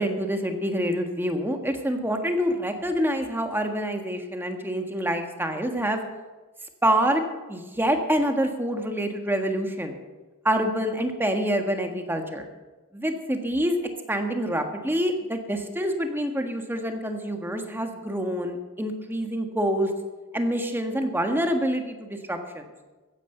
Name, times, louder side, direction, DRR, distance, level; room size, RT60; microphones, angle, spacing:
voice 1, 0.0-6.0 6.8-7.2 7.5-10.0 10.4-12.5 12.9-13.8 14.1-19.9 20.3-22.6, equal, 10° right, 5 dB, 1.5 m, -26 dB
15.0 x 9.7 x 6.7 m, 1.2 s
head